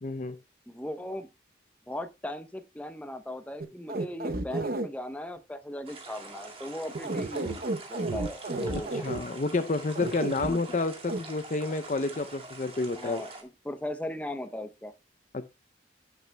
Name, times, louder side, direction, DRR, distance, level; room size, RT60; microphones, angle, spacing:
voice 1, 0.0-0.4 9.0-13.3 15.3-15.4, left 3 dB, 40° left, 0.5 m, -29 dB
voice 2, 0.7-1.3 1.9-7.6 7.9-9.0 10.5-10.6 12.9-14.9, left 1 dB, 10° left, 0.7 m, -38 dB
sound 1, 3.6-4.9 6.9-9.2 10.0-10.5 11.1-11.2, right 2 dB, 50° right, 0.7 m, -31 dB
sound 2, 5.9-13.4, right 3 dB, 30° right, 2.0 m, -45 dB
17.0 x 8.0 x 2.2 m
head